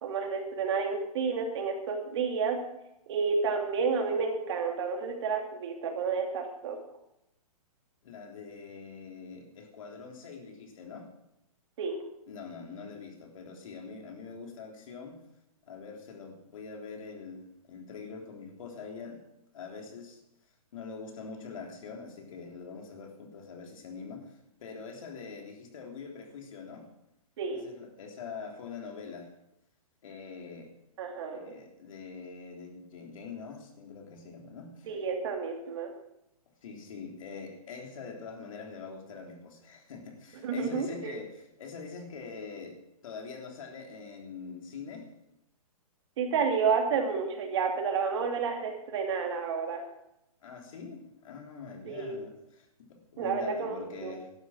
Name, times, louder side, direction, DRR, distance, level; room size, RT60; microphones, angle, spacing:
voice 1, 0.0-2.6 3.1-6.8 11.8-12.0 27.4-27.6 31.0-31.6 34.8-35.9 40.4-41.1 46.2-49.8 51.9-52.2 53.2-54.2, right 5 dB, 45° right, 3 dB, 2.7 m, -30 dB
voice 2, 8.0-11.1 12.3-15.2 15.7-19.2 19.5-20.2 20.7-26.9 27.5-29.3 30.0-30.7 31.3-34.9 36.6-45.1 50.4-54.3, left 5 dB, 60° left, 2 dB, 3.5 m, -44 dB
12.0 x 11.5 x 6.1 m, 0.83 s
hypercardioid pair, 160°, 19 cm